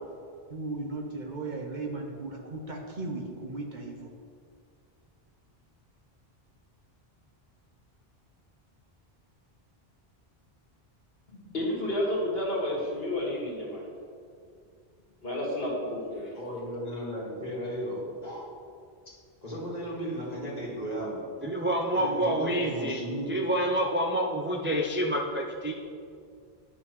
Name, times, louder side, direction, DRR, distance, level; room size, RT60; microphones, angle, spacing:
voice 1, 0.5-4.1, right 3 dB, 50° right, 0 dB, 1.0 m, -36 dB
voice 2, 11.3-13.9 15.2-16.4, left 1 dB, 70° left, -5 dB, 2.2 m, -31 dB
voice 3, 16.3-18.5 19.4-21.2 21.9-23.4, equal, 40° left, -7 dB, 2.3 m, -35 dB
voice 4, 21.4-23.0 23.3-25.7, right 1 dB, 15° right, -1 dB, 0.4 m, -28 dB
11.5 x 6.0 x 3.1 m, 2.2 s
omnidirectional pair, 1.0 m